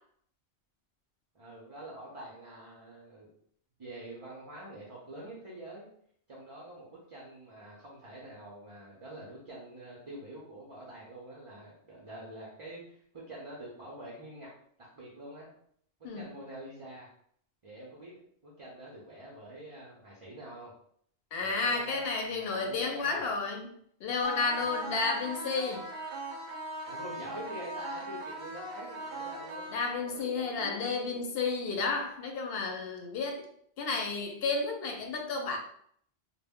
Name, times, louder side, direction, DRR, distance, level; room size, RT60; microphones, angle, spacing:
voice 1, 1.3-3.3 3.8-5.9 6.3-14.5 14.9-15.5 16.1-17.1 17.6-18.2 18.4-20.7 21.4-23.3 24.4-24.7 26.9-29.7 30.0-30.7 31.1-31.2 32.5-32.7 34.5-34.6, right 1 dB, 40° right, -5 dB, 0.5 m, -46 dB
voice 2, 21.3-23.7 24.0-25.9 29.7-33.5 33.8-35.6, left 4 dB, 65° left, 3 dB, 0.7 m, -32 dB
sound 1, 24.2-30.2, right 1 dB, 85° right, 0.9 m, -40 dB
2.1 x 2.0 x 3.5 m, 0.64 s
omnidirectional pair, 1.1 m